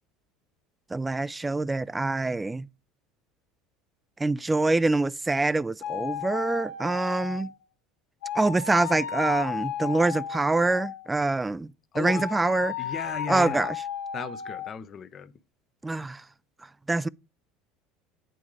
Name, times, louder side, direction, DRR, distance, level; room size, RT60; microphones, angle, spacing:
voice 1, 0.9-2.7 4.2-7.5 8.3-12.8 13.3-13.8 15.8-16.2 16.9-17.1, right 2 dB, 15° right, 0.3 m, -25 dB
sound 1, 5.8-7.6 8.2-11.1 12.0-14.7, left 7 dB, 80° left, 0.8 m, -34 dB
voice 2, 11.9-12.2 12.8-13.7 14.1-15.3, left 7 dB, 40° left, 0.6 m, -36 dB
9.0 x 3.5 x 4.8 m
hypercardioid pair, 80°, 0 cm